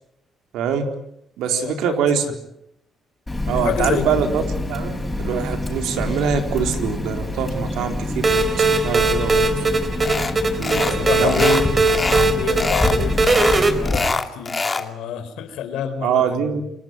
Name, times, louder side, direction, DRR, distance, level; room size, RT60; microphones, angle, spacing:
voice 1, 0.5-0.9 1.4-2.3 3.5-4.4 4.7-9.4 10.6-11.4 16.0-16.6, right 7 dB, 90° right, 5 dB, 4.1 m, -24 dB
voice 2, 1.4-2.2 3.5-4.3 10.9-13.2 13.7-16.6, left 8 dB, 90° left, 9 dB, 4.3 m, -28 dB
Water tap faucet, 3.3-14.0, left 1 dB, 10° left, 6.3 m, -26 dB
sound 1, 8.2-13.7, right 3 dB, 35° right, 3.9 m, -19 dB
sound 2, 10.0-10.3 10.6-11.0 11.2-12.3 12.6-13.0 13.2-14.9, left 3 dB, 25° left, 2.6 m, -24 dB
28.0 x 19.5 x 9.4 m, 0.77 s
cardioid pair, 90°, 0 cm